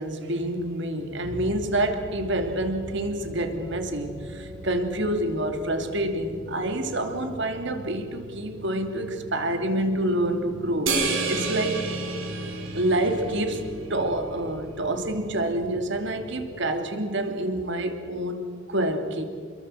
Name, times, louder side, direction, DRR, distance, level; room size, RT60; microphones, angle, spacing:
voice 1, 0.0-11.8 12.7-19.3, right 1 dB, 60° right, 6 dB, 2.6 m, -27 dB
sound 1, 1.2-16.6, equal, 45° right, 4.6 m, -40 dB
sound 2, 10.9-13.6, right 4 dB, 80° right, 5.2 m, -29 dB
27.5 x 22.0 x 7.6 m, 2.1 s
head